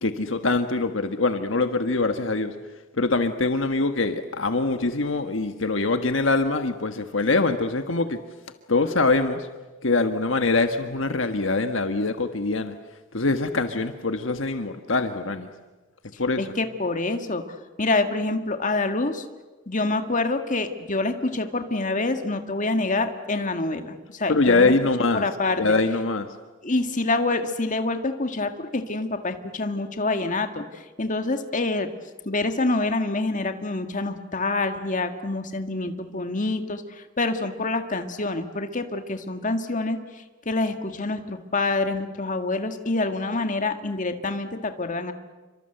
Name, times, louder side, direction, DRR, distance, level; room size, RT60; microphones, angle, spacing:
voice 1, 0.0-2.5 3.0-8.2 8.7-9.5 9.8-12.7 13.1-15.5 16.2-16.5 24.3-25.2 25.6-26.3, left 3 dB, 65° left, 8 dB, 1.5 m, -23 dB
voice 2, 16.4-19.2 19.7-24.7 25.1-25.6 26.6-31.9 32.3-45.1, left 2 dB, 40° left, 7 dB, 1.9 m, -26 dB
29.0 x 24.5 x 8.0 m, 1.2 s
head